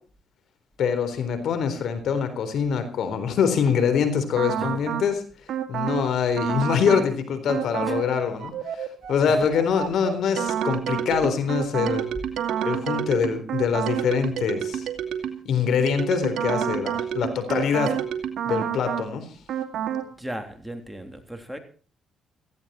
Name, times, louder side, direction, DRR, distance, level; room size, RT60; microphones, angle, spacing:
voice 1, 0.8-5.2 5.7-12.0 12.6-14.9 15.5-18.0 18.5-19.3, left 6 dB, 70° left, 9 dB, 3.9 m, -24 dB
sound 1, 4.4-5.1 5.5-6.1 6.4-7.1 7.5-8.1 8.4-15.5 15.9-19.1 19.5-20.1, right 9 dB, 70° right, 2.5 m, -29 dB
voice 2, 20.2-21.6, right 1 dB, 5° right, 5 dB, 3.3 m, -36 dB
17.5 x 15.5 x 4.4 m, 0.39 s
cardioid pair, 90°, 0 cm